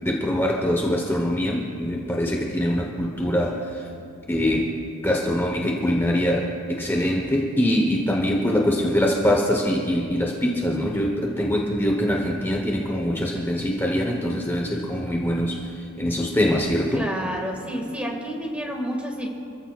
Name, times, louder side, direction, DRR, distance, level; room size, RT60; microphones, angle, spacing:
voice 1, 0.0-3.9 4.3-4.7 5.0-17.1, equal, 10° left, 0 dB, 1.1 m, -23 dB
voice 2, 16.9-19.3, equal, 5° right, 0 dB, 2.0 m, -29 dB
27.5 x 15.0 x 2.5 m, 2.8 s
head